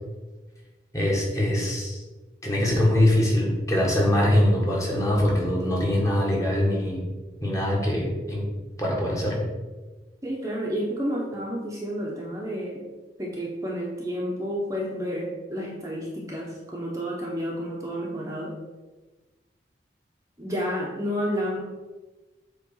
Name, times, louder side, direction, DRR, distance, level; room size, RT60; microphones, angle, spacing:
voice 1, 0.9-2.0 2.4-7.0 7.4-8.4 8.8-9.4, left 1 dB, 20° left, -3 dB, 1.6 m, -23 dB
voice 2, 10.2-12.9 13.2-18.5 20.4-21.6, equal, 20° right, -3 dB, 1.0 m, -30 dB
7.7 x 3.3 x 5.6 m, 1.2 s
head